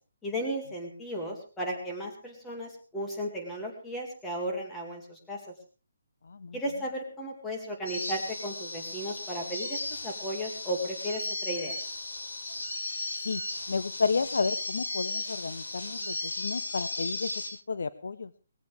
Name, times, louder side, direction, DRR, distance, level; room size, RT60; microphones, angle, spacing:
voice 1, 0.2-5.4 6.5-11.8, equal, 5° left, 0 dB, 2.2 m, -35 dB
sound 1, 7.9-17.5, left 2 dB, 80° left, 6.6 m, -36 dB
voice 2, 13.7-17.3 17.7-18.3, left 4 dB, 65° left, 14 dB, 0.8 m, -31 dB
20.5 x 15.5 x 3.4 m, 0.34 s
hypercardioid pair, 175°, 0 cm